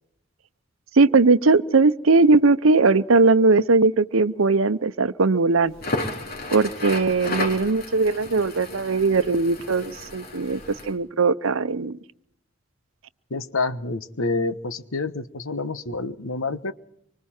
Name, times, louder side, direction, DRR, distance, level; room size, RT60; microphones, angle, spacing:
voice 1, 1.0-5.7 6.5-10.6 10.9-12.0, right 3 dB, 85° right, 14 dB, 0.8 m, -19 dB
Crackle, 5.7-10.9, left 2 dB, 45° left, 4.1 m, -33 dB
voice 2, 13.3-16.7, left 3 dB, 85° left, 12 dB, 1.2 m, -28 dB
26.0 x 25.0 x 4.4 m, 0.72 s
head